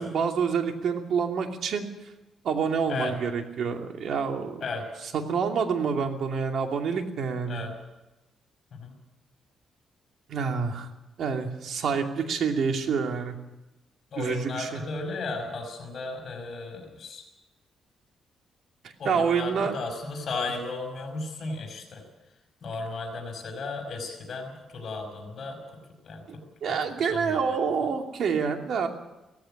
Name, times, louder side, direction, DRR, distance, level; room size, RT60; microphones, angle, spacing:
voice 1, 0.0-1.9 2.4-4.6 5.1-7.6 10.3-10.9 11.2-13.3 14.2-14.8 19.0-19.7 26.3-26.4 26.6-28.9, right 6 dB, 65° right, 4 dB, 2.6 m, -27 dB
voice 2, 14.1-17.2 19.0-22.0 22.6-25.6 26.1-26.2 27.1-27.9, left 3 dB, 50° left, 3 dB, 5.4 m, -35 dB
17.5 x 15.0 x 10.0 m, 1.0 s
cardioid pair, 115°, 0 cm